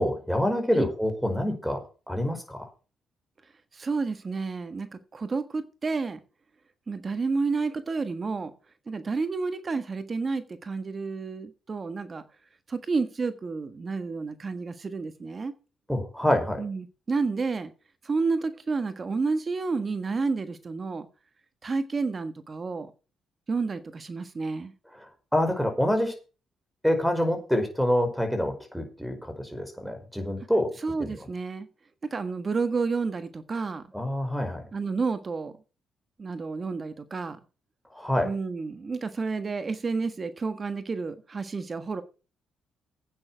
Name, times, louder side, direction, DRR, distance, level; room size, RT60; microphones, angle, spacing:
voice 1, 0.0-1.8 2.1-2.7 15.9-16.6 25.0-25.1 25.3-26.1 26.8-30.7 31.0-31.1 33.9-34.6 37.9-38.3, equal, ahead, 5.1 m, -26 dB
voice 2, 3.7-6.2 6.9-8.5 8.9-12.2 12.7-15.5 16.6-17.7 18.0-21.1 21.6-22.9 23.5-24.7 30.8-31.7 32.1-33.8 34.7-35.5 36.2-37.4 38.2-42.0, right 4 dB, 35° right, 1.4 m, -30 dB
10.5 x 8.9 x 6.1 m
cardioid pair, 90°, 0 cm